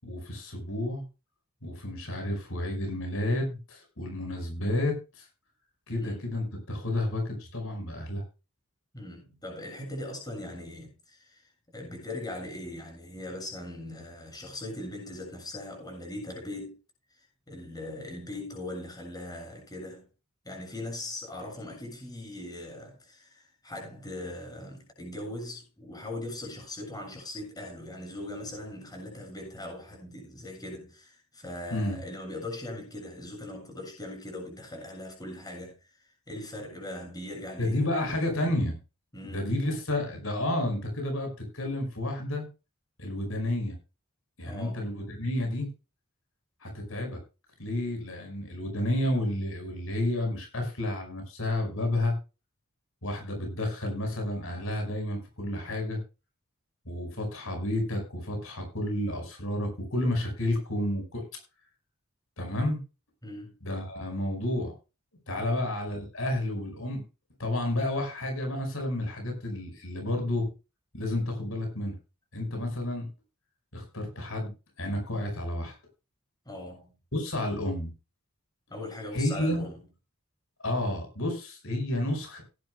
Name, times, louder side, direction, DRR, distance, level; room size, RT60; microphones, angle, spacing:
voice 1, 0.0-1.0 1.6-5.2 5.9-8.2 31.7-32.0 37.6-38.8 39.2-42.4 43.0-43.8 44.4-45.7 46.6-47.2 47.6-52.2 53.0-56.0 56.9-61.3 62.4-62.8 63.6-64.7 65.3-67.0 67.4-70.5 70.9-72.0 72.3-73.1 73.7-74.5 74.8-75.7 77.1-77.9 79.1-79.6 80.6-82.4, left 1 dB, 70° left, 5.3 m, -31 dB
voice 2, 8.9-11.5 11.7-16.8 17.2-20.1 20.4-37.8 39.1-39.4 44.4-44.8 63.2-63.5 65.4-65.6 76.5-76.9 78.7-79.8, left 1 dB, 20° left, 7.3 m, -40 dB
17.5 x 11.0 x 2.3 m
head